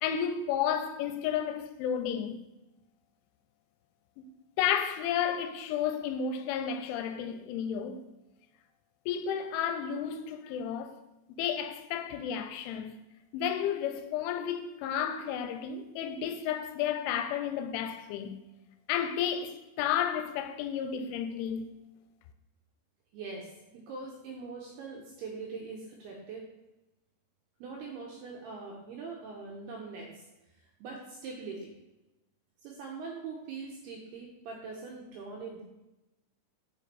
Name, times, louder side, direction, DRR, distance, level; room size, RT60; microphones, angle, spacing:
voice 1, 0.0-2.4 4.2-4.3 4.6-8.0 9.1-11.0 11.3-13.0 13.3-18.4 18.9-21.8, left 8 dB, 90° left, 3.0 m, -32 dB
voice 2, 23.1-26.5 27.6-30.3 30.6-31.7 32.6-35.6, right 4 dB, 80° right, 2.4 m, -42 dB
7.0 x 5.0 x 4.2 m
omnidirectional pair, 5.4 m